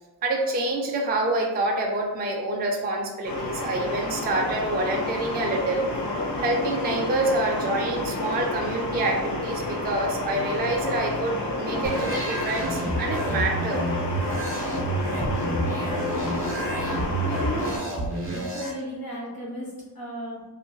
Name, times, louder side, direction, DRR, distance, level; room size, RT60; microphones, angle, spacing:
voice 1, 0.2-5.9 6.4-13.8, right 2 dB, 25° right, 1 dB, 0.3 m, -27 dB
sound 1, 3.2-17.8, left 2 dB, 75° left, 0.7 m, -30 dB
sound 2, 11.8-18.7, right 2 dB, 45° right, 0.9 m, -29 dB
voice 2, 17.2-17.9 18.2-20.4, equal, 55° left, -6 dB, 1.3 m, -35 dB
2.8 x 2.5 x 2.2 m, 1.2 s
wide cardioid pair, 105°, 42 cm